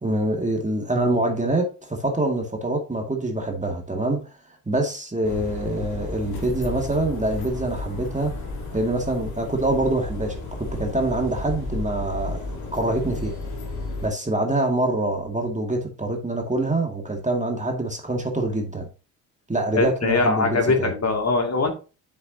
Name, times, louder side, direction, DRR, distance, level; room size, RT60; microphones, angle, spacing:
voice 1, 0.0-4.3 4.7-8.4 8.7-12.4 12.7-13.4 14.0-18.9 19.5-20.9, right 1 dB, 15° right, 2.3 m, -25 dB
sound 1, 5.2-14.1, left 2 dB, 50° left, 3.2 m, -33 dB
voice 2, 19.7-21.7, left 3 dB, 35° left, 2.5 m, -21 dB
8.7 x 6.8 x 2.9 m
hypercardioid pair, 50°, 46 cm